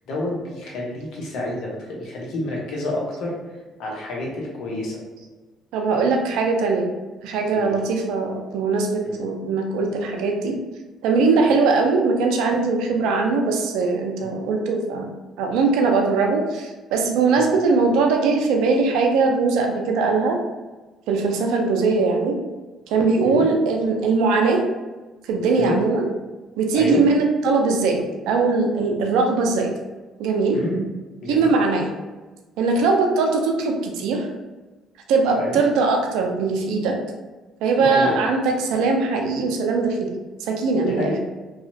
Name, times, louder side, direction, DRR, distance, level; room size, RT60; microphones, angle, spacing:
voice 1, 0.1-3.3 3.8-5.0 7.5-7.7 9.0-9.2 11.4-11.5 14.2-14.4 17.3-17.5 23.2-23.5 25.5-25.8 26.7-27.0 30.5-30.8 31.2-31.5 35.3-35.6 37.8-38.2 40.8-41.2, left 1 dB, 75° left, -3 dB, 0.8 m, -29 dB
voice 2, 5.7-6.9 7.2-10.6 11.0-15.1 15.4-20.4 21.1-22.4 22.9-24.6 25.3-26.1 26.6-29.7 30.2-30.6 31.3-31.9 32.6-34.3 35.1-37.0 37.6-40.1 40.4-41.1, right 4 dB, 80° right, 2 dB, 0.4 m, -20 dB
2.8 x 2.4 x 2.7 m, 1.2 s
hypercardioid pair, 60°, 0 cm